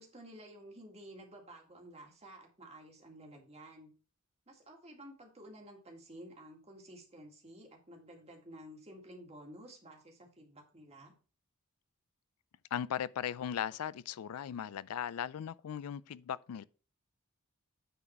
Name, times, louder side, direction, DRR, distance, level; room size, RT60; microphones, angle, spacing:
voice 1, 0.0-3.9 4.5-11.1, right 1 dB, 30° right, 1.9 m, -52 dB
voice 2, 12.7-16.6, left 9 dB, 90° left, 0.4 m, -38 dB
9.3 x 4.0 x 4.4 m
head